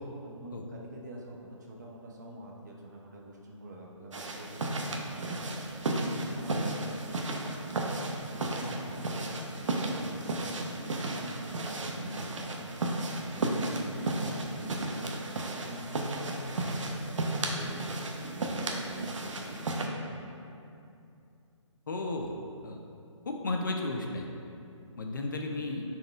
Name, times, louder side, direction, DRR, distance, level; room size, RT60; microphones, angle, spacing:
voice 1, 0.2-5.5 5.8-12.7 13.3-20.1, right 1 dB, 35° right, -2 dB, 0.7 m, -47 dB
sound 1, 4.1-19.9, right 2 dB, 70° right, 0.8 m, -34 dB
voice 2, 21.9-22.3 22.6-22.8 23.3-24.3 25.0-25.8, left 2 dB, 40° left, 2 dB, 0.4 m, -33 dB
9.2 x 4.4 x 2.4 m, 2.6 s
hypercardioid pair, 165°, 17 cm